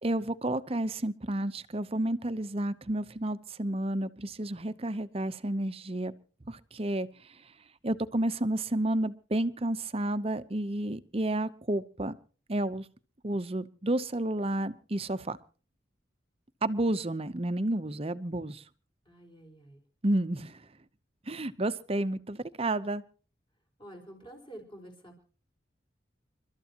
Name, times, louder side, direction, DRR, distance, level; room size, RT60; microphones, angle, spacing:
voice 1, 0.0-6.1 6.5-7.1 7.8-12.2 12.5-12.9 13.2-15.4 16.6-18.6 20.0-20.6 21.3-23.0, right 1 dB, 30° right, 14 dB, 0.8 m, -31 dB
voice 2, 19.0-19.8 23.8-25.2, right 1 dB, 30° left, 2 dB, 4.8 m, -49 dB
29.5 x 13.0 x 2.9 m, 0.37 s
head